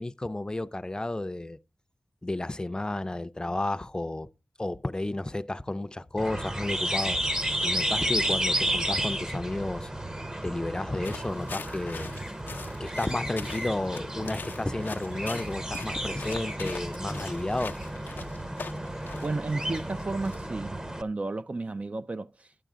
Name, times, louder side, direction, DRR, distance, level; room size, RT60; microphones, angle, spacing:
voice 1, 0.0-1.6 2.2-4.3 4.6-7.2 7.6-9.9 10.4-12.1 12.8-17.7, left 2 dB, 25° left, 0.5 m, -32 dB
sound 1, 6.2-21.0, right 1 dB, 20° right, 0.9 m, -32 dB
sound 2, 11.0-20.4, left 5 dB, 85° left, 0.5 m, -43 dB
voice 2, 19.2-22.3, right 3 dB, 40° right, 0.5 m, -33 dB
11.5 x 10.0 x 3.7 m
wide cardioid pair, 65°, 3 cm